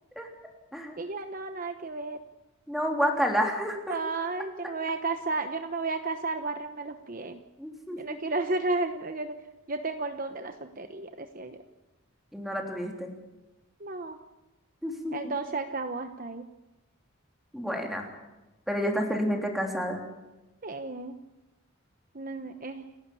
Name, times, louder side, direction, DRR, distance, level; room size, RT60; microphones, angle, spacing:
voice 1, 1.0-2.2 3.9-7.4 8.0-9.4 9.7-11.6 13.8-14.2 15.1-16.5 20.6-21.2 22.1-22.9, right 3 dB, 40° right, 7 dB, 1.0 m, -33 dB
voice 2, 2.7-4.0 7.6-8.0 12.3-13.1 14.8-15.3 17.5-18.1 18.7-20.0, equal, ahead, 1 dB, 3.4 m, -29 dB
29.5 x 12.0 x 8.5 m, 1.0 s
head